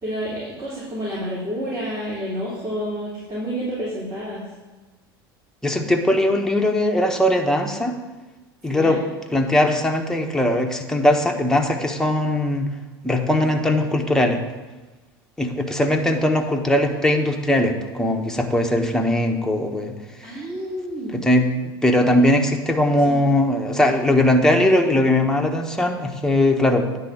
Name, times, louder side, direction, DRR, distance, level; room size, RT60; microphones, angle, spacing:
voice 1, 0.0-4.4 8.7-9.0 20.2-21.2 23.0-23.4, equal, 30° right, -8 dB, 3.3 m, -29 dB
voice 2, 5.6-8.0 8.6-9.0 9.3-12.7 13.0-14.4 15.4-19.9 21.1-27.0, left 1 dB, 5° left, 2 dB, 1.1 m, -20 dB
9.7 x 3.8 x 7.2 m, 1.2 s
hypercardioid pair, 80°, 13 cm